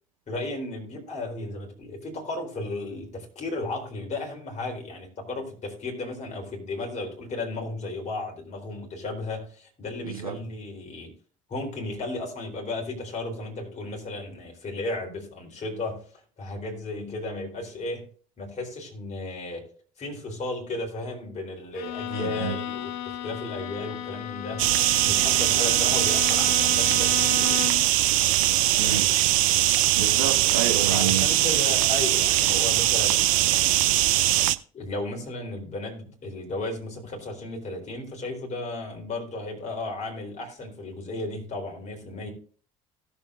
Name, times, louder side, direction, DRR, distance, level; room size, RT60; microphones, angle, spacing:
voice 1, 0.3-11.1 11.5-16.0 16.4-18.1 18.4-19.7 20.0-24.7 25.0-27.6 30.9-33.9 34.7-42.3, left 2 dB, 40° left, 3.9 m, -34 dB
voice 2, 10.0-10.4 22.1-22.5 28.8-29.1 29.9-31.3, right 9 dB, 90° right, 1.5 m, -29 dB
Bowed string instrument, 21.7-28.0, left 13 dB, 60° left, 0.6 m, -34 dB
sound 1, 24.6-34.6, right 14 dB, 70° right, 0.5 m, -21 dB
17.5 x 7.2 x 2.6 m
hypercardioid pair, 55°, 18 cm